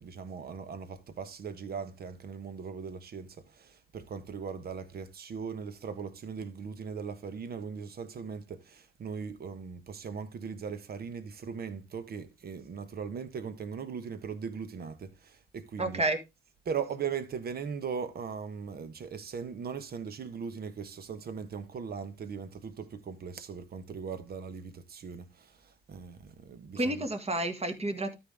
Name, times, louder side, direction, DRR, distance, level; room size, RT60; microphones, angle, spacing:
voice 1, 0.0-16.0 16.6-27.1, right 6 dB, 55° right, 1.2 m, -39 dB
voice 2, 15.8-16.2 26.7-28.1, right 1 dB, 30° right, 1.9 m, -30 dB
13.0 x 4.6 x 3.5 m
hypercardioid pair, 45°, 19 cm